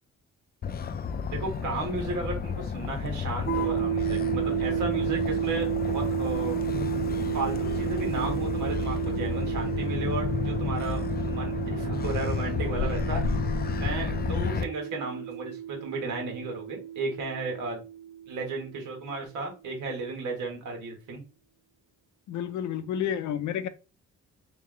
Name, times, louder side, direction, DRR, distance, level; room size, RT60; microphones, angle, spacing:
Motor vehicle (road), 0.6-14.6, left 6 dB, 30° left, 0.4 m, -31 dB
voice 1, 1.3-6.6 7.3-13.2 13.8-17.8 18.3-21.2, right 3 dB, 80° right, 1.8 m, -34 dB
sound 1, 3.5-19.0, right 11 dB, 45° right, 0.6 m, -32 dB
voice 2, 22.3-23.7, left 9 dB, 75° left, 0.6 m, -30 dB
3.4 x 3.1 x 3.3 m
cardioid pair, 90°, 30 cm